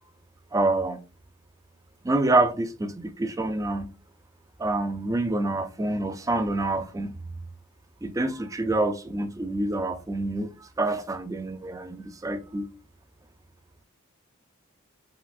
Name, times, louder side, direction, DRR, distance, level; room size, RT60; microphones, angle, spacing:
voice 1, 0.5-1.0 2.0-3.9 4.6-7.2 8.0-12.7, right 2 dB, 15° right, 0.3 m, -27 dB
5.6 x 2.4 x 2.3 m
head